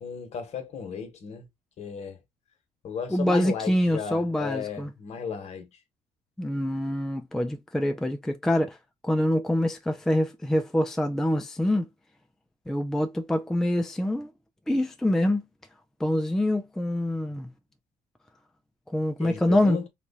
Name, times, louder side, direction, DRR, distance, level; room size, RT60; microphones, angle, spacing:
voice 1, 0.0-1.5 1.8-2.2 2.8-5.7 19.2-19.9, left 6 dB, 50° left, 1.1 m, -35 dB
voice 2, 3.1-4.9 6.4-8.8 9.0-11.9 12.7-14.3 14.7-15.4 16.0-17.5 18.9-19.8, left 1 dB, 5° left, 0.4 m, -25 dB
2.9 x 2.3 x 4.0 m
cardioid pair, 110°, 14 cm